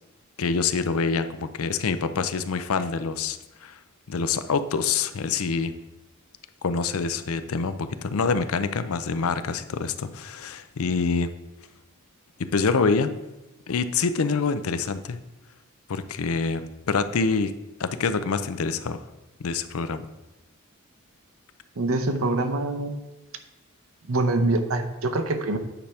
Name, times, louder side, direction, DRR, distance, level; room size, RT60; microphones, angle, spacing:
voice 1, 0.4-3.8 4.1-5.7 6.6-11.3 12.5-13.1 13.7-15.2 15.9-17.5 17.8-19.0 19.4-20.1, left 4 dB, 75° left, 11 dB, 0.5 m, -26 dB
voice 2, 21.8-23.0 24.1-25.6, right 2 dB, 70° right, 6 dB, 0.7 m, -24 dB
9.1 x 3.4 x 5.6 m, 1.0 s
head